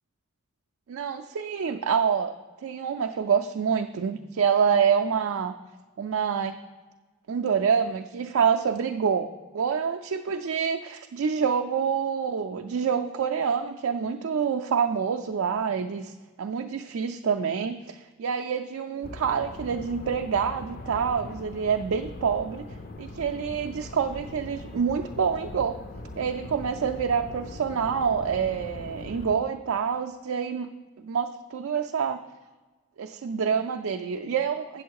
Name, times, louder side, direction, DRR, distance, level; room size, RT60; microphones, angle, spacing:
voice 1, 0.9-2.3 2.6-5.5 6.0-6.6 7.3-9.3 9.5-16.1 16.4-22.7 23.0-25.8 26.2-30.7 31.0-32.2 33.0-34.8, right 6 dB, 70° right, 5 dB, 0.4 m, -27 dB
sound 1, 19.0-29.3, left 2 dB, 40° left, 0.4 m, -41 dB
8.1 x 7.0 x 4.7 m, 1.3 s
head